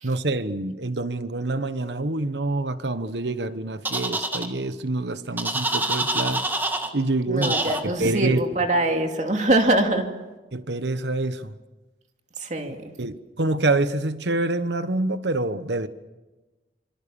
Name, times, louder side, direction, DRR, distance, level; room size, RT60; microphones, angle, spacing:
voice 1, 0.0-6.5 6.9-8.4 10.5-11.5 13.0-15.9, right 2 dB, 80° right, 1.2 m, -26 dB
sound 1, 3.9-4.5 5.4-6.9 7.4-7.8, right 2 dB, 10° right, 1.9 m, -26 dB
voice 2, 7.3-10.1 12.4-12.9, right 1 dB, 45° right, 2.7 m, -23 dB
26.5 x 26.5 x 7.1 m
head